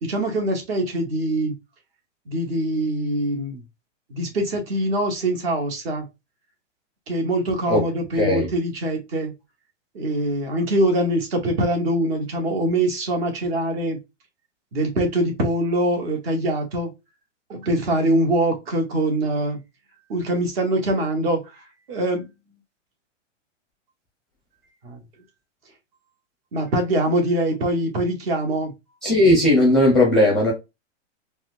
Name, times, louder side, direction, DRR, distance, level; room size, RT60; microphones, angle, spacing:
voice 1, 0.0-1.5 2.3-3.6 4.1-6.1 7.1-9.3 9.9-14.0 14.7-16.9 17.5-19.6 20.1-22.3 24.8-25.0 26.5-28.7, right 1 dB, 50° right, 1.4 m, -23 dB
voice 2, 8.2-8.5 29.0-30.5, left 1 dB, ahead, 0.6 m, -17 dB
4.2 x 2.2 x 2.5 m
supercardioid pair, 165°, 38 cm